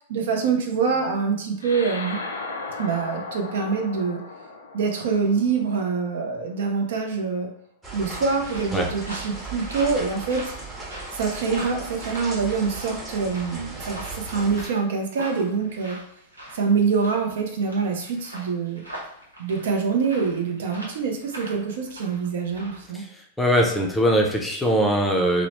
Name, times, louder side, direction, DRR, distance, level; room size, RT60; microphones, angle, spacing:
voice 1, 0.0-2.2 2.8-4.2 4.7-7.5 7.9-10.5 11.1-16.0 16.5-18.8 19.4-23.0, right 5 dB, 60° right, 2 dB, 0.5 m, -25 dB
sound 1, 1.6-6.3, left 3 dB, 75° left, 0.4 m, -36 dB
sound 2, 7.8-14.7, right 2 dB, 20° right, 1.2 m, -36 dB
sound 3, 8.2-22.9, right 1 dB, 90° right, 0.8 m, -42 dB
voice 2, 22.9-25.5, equal, 5° left, 0 dB, 0.5 m, -21 dB
2.9 x 2.0 x 2.8 m, 0.71 s
figure-of-eight pair, 100°, 0 cm